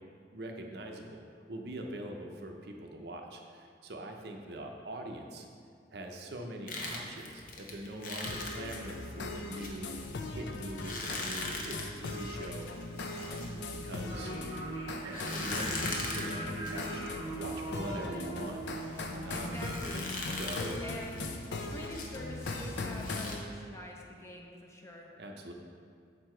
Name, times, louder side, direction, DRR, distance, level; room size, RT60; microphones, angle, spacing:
voice 1, 0.3-1.2 1.5-5.5 5.9-9.9 10.3-13.5 13.8-14.4 15.0-19.6 20.3-20.8 25.2-25.5, right 1 dB, 60° right, 2 dB, 0.6 m, -43 dB
sound 1, 6.7-14.6 15.1-23.4, left 2 dB, 50° left, 0.8 m, -42 dB
sound 2, 8.3-23.4, left 2 dB, 75° left, 0.5 m, -39 dB
sound 3, 14.1-19.9, right 1 dB, 25° right, 1.0 m, -41 dB
voice 2, 19.3-20.1 20.8-25.1, left 1 dB, 15° left, -1 dB, 0.6 m, -46 dB
6.8 x 4.7 x 4.4 m, 2.2 s
head